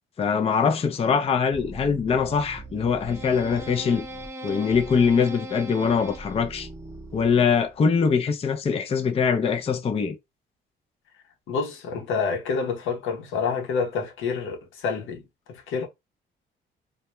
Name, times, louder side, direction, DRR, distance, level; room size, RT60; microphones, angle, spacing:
voice 1, 0.2-4.0 4.4-6.7 7.1-10.2, left 6 dB, 30° left, 0.4 m, -23 dB
sound 1, 1.5-7.8, right 1 dB, 15° right, 0.7 m, -39 dB
voice 2, 11.5-15.2 15.5-15.9, left 5 dB, 80° left, 0.8 m, -28 dB
2.2 x 2.2 x 2.9 m
cardioid pair, 90°, 20 cm